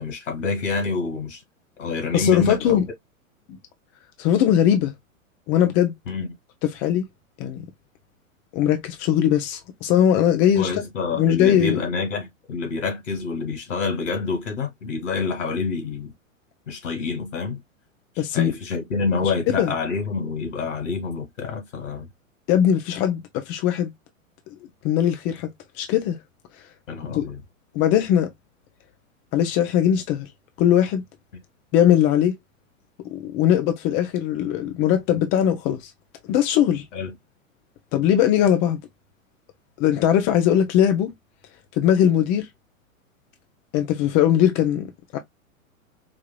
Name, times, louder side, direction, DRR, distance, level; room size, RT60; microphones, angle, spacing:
voice 1, 0.0-1.4 1.8-2.8 6.1-6.3 10.5-16.1 16.7-17.6 18.3-22.1 26.9-27.4 36.9-37.1, left 4 dB, 60° left, 2.2 m, -27 dB
voice 2, 2.1-2.9 4.2-4.9 5.5-5.9 6.6-7.0 7.4-7.7 8.5-10.7 11.1-11.8 18.2-18.5 19.2-19.7 22.5-23.9 24.8-25.5 25.8-26.2 27.1-27.3 27.7-28.3 29.3-30.3 30.6-31.0 31.7-32.3 33.1-35.9 36.3-36.8 37.9-38.8 39.8-41.1 41.8-42.5 43.7-44.9 45.1-45.2, left 10 dB, 20° left, 0.4 m, -20 dB
4.9 x 2.8 x 2.2 m
figure-of-eight pair, 105°, 41 cm